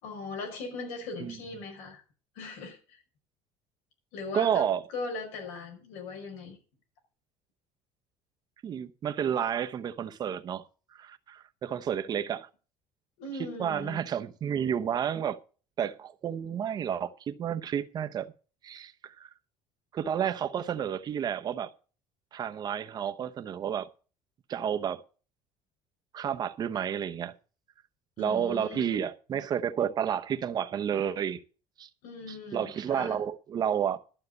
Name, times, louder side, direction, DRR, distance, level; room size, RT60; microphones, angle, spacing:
voice 1, 0.0-2.0 2.3-3.0 4.1-6.6 13.2-14.0 28.2-29.0 32.0-33.2, left 3 dB, 85° left, 5.3 m, -39 dB
voice 2, 4.3-4.8 8.6-10.6 10.9-12.5 13.6-15.4 15.8-18.3 18.6-19.3 19.9-21.7 22.3-23.9 24.5-25.0 26.1-27.3 28.2-31.4 31.8-31.9 32.5-34.0, right 8 dB, 35° right, 0.8 m, -31 dB
12.0 x 6.5 x 7.9 m
cardioid pair, 145°, 12 cm